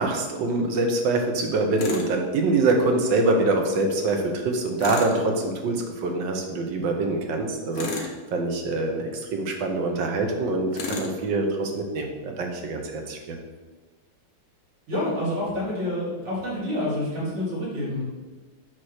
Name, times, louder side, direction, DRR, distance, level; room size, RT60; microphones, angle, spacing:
voice 1, 0.0-13.2, right 2 dB, 65° right, 3 dB, 1.6 m, -25 dB
Tools, 1.8-2.1 4.8-5.2 7.7-8.2 10.7-11.1, left 4 dB, 55° left, 1.3 m, -32 dB
voice 2, 14.9-18.0, left 1 dB, 85° right, -7 dB, 3.6 m, -28 dB
8.5 x 3.1 x 6.4 m, 1.3 s
omnidirectional pair, 2.4 m